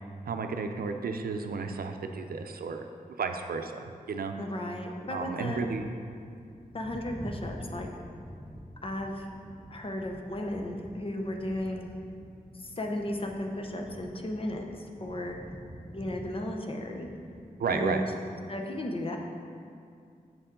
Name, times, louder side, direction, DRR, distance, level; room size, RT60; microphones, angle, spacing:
voice 1, 0.3-4.3 5.1-5.9 17.6-18.0, right 4 dB, 80° right, 6 dB, 0.5 m, -33 dB
voice 2, 4.4-5.7 6.7-7.9 8.8-9.3 9.7-11.9 12.5-15.4 15.9-17.1 17.7-18.0 18.5-19.2, left 1 dB, 35° left, 2 dB, 0.8 m, -35 dB
sound 1, 5.1-17.5, equal, 5° right, 0.4 m, -47 dB
7.9 x 7.0 x 3.8 m, 2.3 s
wide cardioid pair, 130°, 15 cm